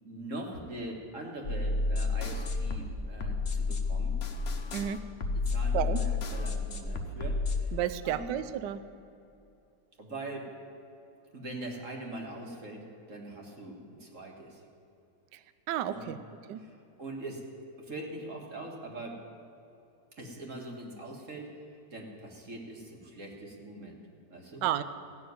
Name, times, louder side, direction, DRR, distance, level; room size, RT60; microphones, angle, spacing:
voice 1, 0.0-4.2 5.3-7.7 8.0-8.3 10.0-10.6 11.3-14.6 15.9-16.1 16.6-16.7 17.0-17.5 17.8-19.2 20.2-21.6 21.9-24.0 24.3-24.6, right 2 dB, 45° right, 0 dB, 1.9 m, -42 dB
sound 1, 1.4-7.6, left 4 dB, 45° left, 0.9 m, -31 dB
voice 2, 4.7-5.0 5.7-6.0 7.7-8.8 15.7-16.2 16.5-16.6 24.6-24.8, right 11 dB, 75° right, 13 dB, 1.2 m, -31 dB
15.5 x 6.3 x 9.5 m, 2.6 s
omnidirectional pair, 2.0 m